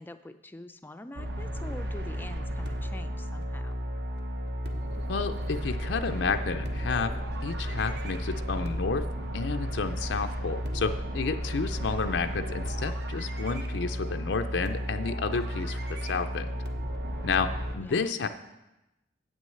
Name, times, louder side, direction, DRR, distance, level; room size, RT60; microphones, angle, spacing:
voice 1, 0.0-3.8 17.4-18.1, left 1 dB, 10° left, 9 dB, 0.4 m, -45 dB
sound 1, 1.1-17.7, equal, 60° right, 1.0 m, -33 dB
voice 2, 5.1-7.1 7.4-9.1 9.3-16.6 17.2-18.3, left 5 dB, 75° left, 7 dB, 0.5 m, -31 dB
8.2 x 6.2 x 7.7 m, 0.98 s
head